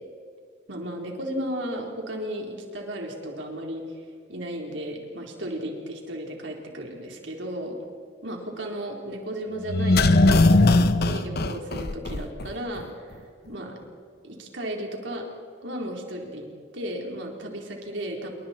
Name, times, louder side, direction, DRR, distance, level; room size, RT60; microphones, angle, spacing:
voice 1, 0.7-4.0 4.3-7.8 8.2-13.2 13.5-13.8 14.2-15.2 15.6-16.5 16.7-18.3, right 1 dB, 80° right, 0 dB, 4.0 m, -34 dB
sound 1, 9.7-12.5 12.8-12.9, left 2 dB, 60° left, 1.0 m, -19 dB
28.0 x 23.0 x 4.5 m, 2.2 s
head